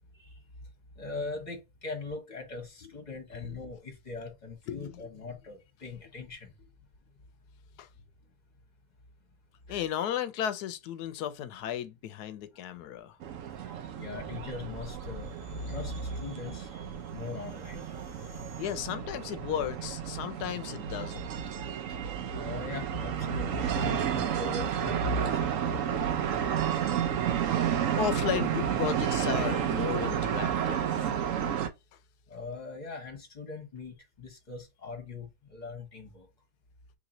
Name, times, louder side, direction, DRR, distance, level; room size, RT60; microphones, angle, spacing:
voice 1, 1.0-6.5 9.7-9.8 14.0-16.9 17.1-17.9 22.3-25.4 32.3-36.2, left 2 dB, 30° left, 1.2 m, -39 dB
voice 2, 4.7-5.1 7.8-7.9 9.7-13.2 18.6-21.3 27.3-27.4 28.0-31.1, left 10 dB, 85° left, 1.2 m, -34 dB
sound 1, 13.2-31.7, right 9 dB, 65° right, 0.9 m, -31 dB
3.0 x 2.9 x 3.8 m
omnidirectional pair, 1.7 m